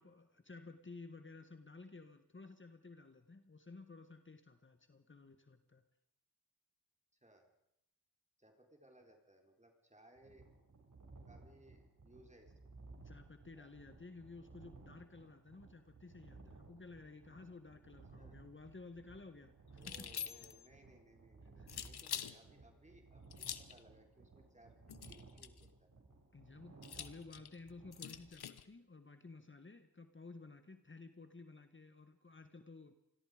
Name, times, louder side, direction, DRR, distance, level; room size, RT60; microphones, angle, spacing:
voice 1, 0.0-5.8 13.0-20.1 20.4-20.5 21.6-21.8 26.3-32.9, left 3 dB, 30° left, 8 dB, 1.6 m, -54 dB
voice 2, 8.4-10.5 11.3-12.8 13.5-13.7 18.2-18.4 19.7-24.7 25.1-25.9 26.9-27.1, right 1 dB, 20° right, 2 dB, 4.2 m, -64 dB
sound 1, 10.2-28.3, right 3 dB, 55° right, 7.0 m, -59 dB
sound 2, 19.8-20.7 21.7-22.4 23.3-23.8 24.9-25.7 26.8-28.6, left 8 dB, 85° left, 1.2 m, -45 dB
27.5 x 21.0 x 5.2 m, 0.82 s
cardioid pair, 65°, 38 cm